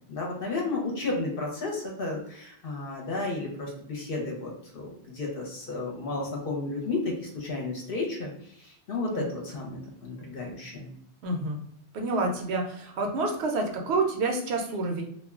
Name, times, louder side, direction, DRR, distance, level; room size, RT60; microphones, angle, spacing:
voice 1, 0.1-8.3 8.5-10.9, left 3 dB, 55° left, -1 dB, 0.8 m, -33 dB
voice 2, 11.2-11.6 11.9-15.0, right 3 dB, 70° right, 1 dB, 0.8 m, -28 dB
2.4 x 2.1 x 3.5 m, 0.68 s
omnidirectional pair, 1.2 m